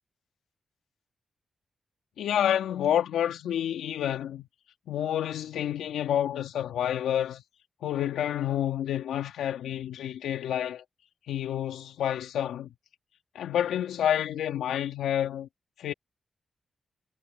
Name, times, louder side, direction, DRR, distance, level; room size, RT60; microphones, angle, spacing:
voice 1, 2.2-4.5 4.9-7.4 7.8-10.8 11.3-12.7 13.3-15.5 15.8-15.9, left 10 dB, 85° left, 2.6 m, -29 dB
supercardioid pair, 40°, 0 cm